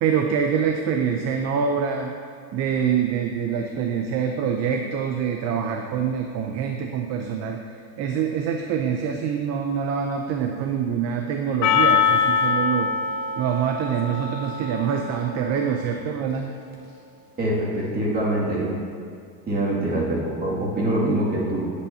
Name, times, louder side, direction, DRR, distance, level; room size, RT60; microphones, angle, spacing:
voice 1, 0.0-2.1 2.5-7.6 8.0-12.9 13.4-16.5, right 7 dB, 40° right, 4 dB, 0.5 m, -25 dB
Percussion, 11.6-15.9, left 6 dB, 45° left, 0.8 m, -24 dB
voice 2, 17.4-18.7 19.5-21.7, right 1 dB, 25° right, -6 dB, 2.2 m, -24 dB
9.9 x 8.2 x 2.7 m, 2.2 s
supercardioid pair, 135°, 40 cm